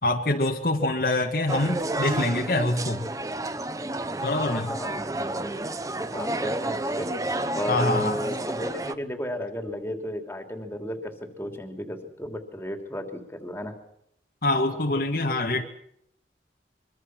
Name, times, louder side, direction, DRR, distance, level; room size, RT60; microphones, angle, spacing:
voice 1, 0.0-3.1 4.2-4.7 7.7-8.2 14.4-15.7, left 2 dB, 55° left, 2 dB, 2.0 m, -25 dB
sound 1, 1.5-8.9, right 1 dB, 20° right, 0.9 m, -31 dB
voice 2, 4.3-5.1 5.4-5.5 6.0-7.1 7.5-13.7, equal, 15° left, 4 dB, 3.3 m, -34 dB
25.0 x 24.0 x 6.2 m, 0.73 s
head